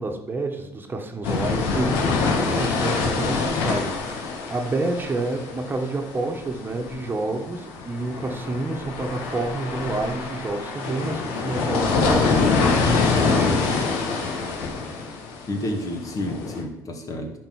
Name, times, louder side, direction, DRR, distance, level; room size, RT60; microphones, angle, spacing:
voice 1, 0.0-13.9, right 2 dB, 25° right, 3 dB, 1.4 m, -29 dB
sound 1, 1.2-16.6, left 4 dB, 85° left, 1.5 m, -25 dB
voice 2, 13.4-13.8 15.5-17.3, left 1 dB, 40° left, 3 dB, 1.9 m, -30 dB
10.0 x 4.5 x 6.4 m, 0.92 s
supercardioid pair, 90°, 9 cm